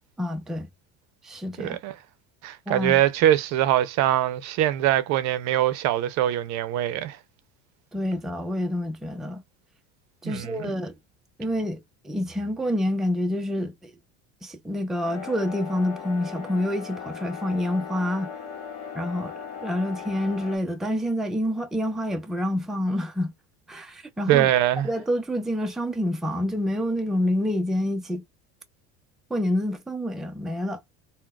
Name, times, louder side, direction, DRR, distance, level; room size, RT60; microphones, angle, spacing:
voice 1, 0.2-0.7 1.2-1.8 2.7-3.0 7.9-9.4 10.2-10.9 11.4-13.9 14.4-18.3 18.9-19.3 19.6-23.3 23.7-24.5 24.8-28.2 29.3-30.8, left 1 dB, ahead, 0.5 m, -27 dB
voice 2, 1.6-1.9 2.4-7.2 10.2-10.7 24.3-24.9, right 12 dB, 60° right, 0.6 m, -23 dB
sound 1, 15.0-20.6, left 7 dB, 55° left, 1.4 m, -38 dB
3.8 x 2.2 x 2.3 m
supercardioid pair, 110°, 33 cm